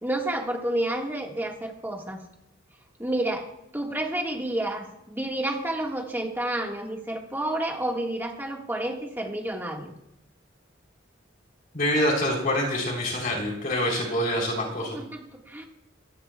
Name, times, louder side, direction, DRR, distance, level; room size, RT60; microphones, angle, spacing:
voice 1, 0.0-2.2 3.0-9.9 14.8-15.7, right 1 dB, 10° right, 0 dB, 1.6 m, -30 dB
voice 2, 11.7-15.0, left 1 dB, 50° left, 0 dB, 3.4 m, -26 dB
24.0 x 16.5 x 2.3 m, 0.80 s
head